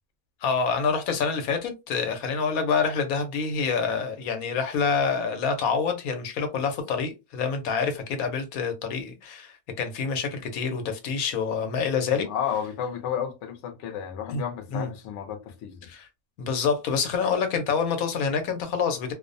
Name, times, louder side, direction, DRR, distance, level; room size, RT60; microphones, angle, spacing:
voice 1, 0.4-12.3 14.3-14.4 14.7-14.9 15.8-16.1 16.4-19.1, left 5 dB, 85° left, 1.1 m, -27 dB
voice 2, 12.1-15.9, left 8 dB, 65° left, 0.8 m, -32 dB
2.5 x 2.0 x 2.5 m
omnidirectional pair, 1.5 m